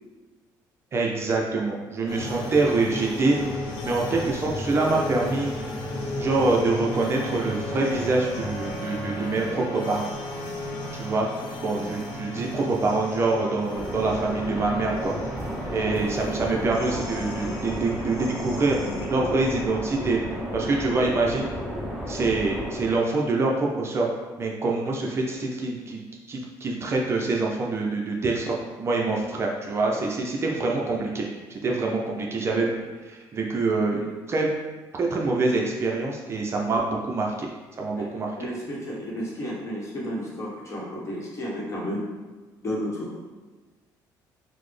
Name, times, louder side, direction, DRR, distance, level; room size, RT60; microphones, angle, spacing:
voice 1, 0.9-5.5 6.2-10.1 10.9-11.3 11.6-15.2 15.7-18.8 19.1-20.2 20.5-21.5 22.1-24.1 24.4-26.0 26.3-34.5 34.9-38.3, right 3 dB, 35° right, -1 dB, 0.5 m, -25 dB
sound 1, 2.1-19.1, left 1 dB, 85° left, 0.6 m, -34 dB
sound 2, 13.7-23.0, equal, 5° right, 0.8 m, -33 dB
voice 2, 38.4-42.1 42.6-43.2, equal, 40° left, -3 dB, 1.0 m, -32 dB
3.9 x 2.1 x 3.2 m, 1.3 s
cardioid pair, 115°, 8 cm